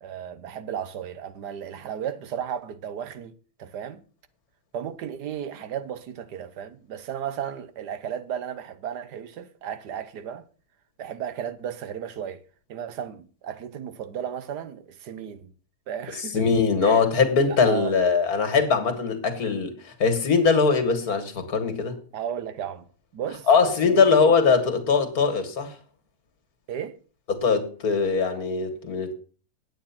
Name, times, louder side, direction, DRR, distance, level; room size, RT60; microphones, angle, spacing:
voice 1, 0.0-3.3 3.6-4.0 4.7-10.4 11.0-12.4 12.7-15.5 15.9-16.5 16.8-17.0 17.5-17.9 22.1-22.9 23.1-24.3 26.7-26.9, right 9 dB, 80° right, 1.5 m, -34 dB
voice 2, 16.3-22.0 23.5-25.7 27.3-29.2, left 5 dB, 65° left, 2.1 m, -21 dB
9.3 x 8.6 x 5.8 m
omnidirectional pair, 1.7 m